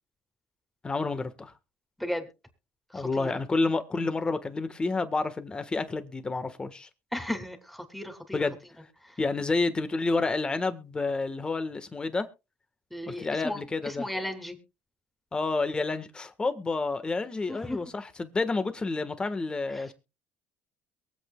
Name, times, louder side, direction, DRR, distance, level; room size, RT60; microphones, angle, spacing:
voice 1, 0.8-1.5 2.9-6.9 8.3-8.6 9.2-12.3 13.1-14.1 15.3-19.9, left 3 dB, 25° left, 1.5 m, -29 dB
voice 2, 2.9-3.4 7.1-8.4 9.0-9.2 12.9-14.6 17.5-17.8 19.7-19.9, left 1 dB, 5° left, 3.0 m, -35 dB
23.0 x 8.2 x 2.4 m
cardioid pair, 95°, 4 cm